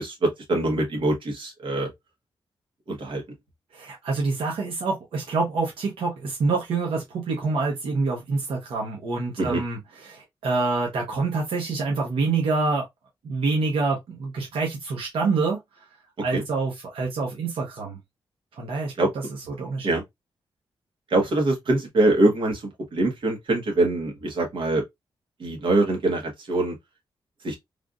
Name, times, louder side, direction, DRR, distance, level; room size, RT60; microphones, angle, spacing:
voice 1, 0.0-1.9 2.9-3.2 9.4-9.6 16.3-16.4 19.0-19.1 19.8-20.0 21.1-22.6 22.9-24.8 25.4-26.7 27.4-27.6, right 2 dB, 65° right, 1.3 m, -23 dB
voice 2, 3.7-12.8 13.2-15.6 16.2-18.0 18.6-18.9 19.5-19.9, right 3 dB, 90° right, 1.0 m, -26 dB
3.3 x 2.6 x 2.3 m
wide cardioid pair, 135°, 9 cm